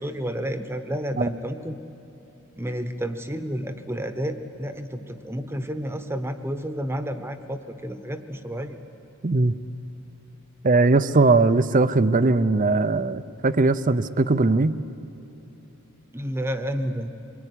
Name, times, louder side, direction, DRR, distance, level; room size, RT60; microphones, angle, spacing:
voice 1, 0.0-1.8 2.6-8.8 16.1-17.1, equal, 10° right, 9 dB, 1.1 m, -30 dB
voice 2, 9.2-9.5 10.6-14.8, right 3 dB, 35° right, 14 dB, 0.7 m, -20 dB
25.0 x 22.0 x 10.0 m, 3.0 s
head